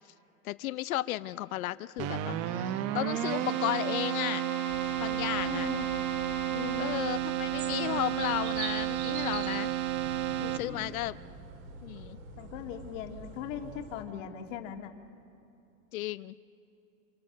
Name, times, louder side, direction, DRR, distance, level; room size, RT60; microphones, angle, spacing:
voice 1, 0.4-4.4 5.0-5.7 6.8-9.7 10.6-11.2 11.8-12.2 15.9-16.4, left 16 dB, 90° left, 15 dB, 0.7 m, -34 dB
Keyboard (musical), 2.0-11.0, right 12 dB, 35° right, 0.9 m, -32 dB
Wind instrument woodwind instrument, 2.9-7.0, left 2 dB, 5° left, 0.7 m, -44 dB
sound 1, 4.7-14.0, right 5 dB, 85° right, 3.9 m, -45 dB
voice 2, 5.4-5.9 6.5-6.9 10.4-10.8 12.4-14.9, left 9 dB, 60° left, 3 dB, 2.1 m, -40 dB
28.5 x 25.0 x 6.6 m, 2.8 s
supercardioid pair, 145°, 41 cm